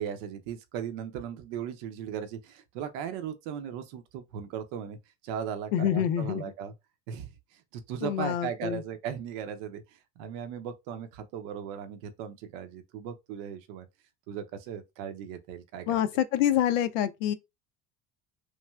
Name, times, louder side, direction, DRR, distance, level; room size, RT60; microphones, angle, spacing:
voice 1, 0.0-5.0 5.2-6.7 7.1-13.9 14.3-16.0, right 8 dB, 75° right, 0.6 m, -37 dB
voice 2, 5.7-6.4 8.0-8.8 15.9-17.3, left 10 dB, 85° left, 0.5 m, -26 dB
3.1 x 2.5 x 2.3 m
supercardioid pair, 85°, 37 cm